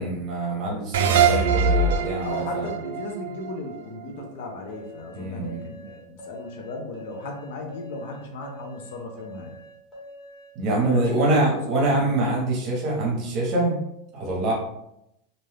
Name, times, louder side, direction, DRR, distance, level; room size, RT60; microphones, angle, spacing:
voice 1, 0.0-2.7 5.1-5.6 10.5-13.8 14.1-14.5, right 2 dB, 35° right, -2 dB, 0.9 m, -25 dB
sound 1, 0.9-4.2, right 5 dB, 75° right, 0.4 m, -23 dB
voice 2, 2.2-9.6 10.8-12.4 14.5-14.6, left 2 dB, 65° left, 2 dB, 0.6 m, -36 dB
sound 2, 4.7-11.2, left 1 dB, 10° left, 1.1 m, -44 dB
2.6 x 2.3 x 3.3 m, 0.80 s
supercardioid pair, 165°, 0 cm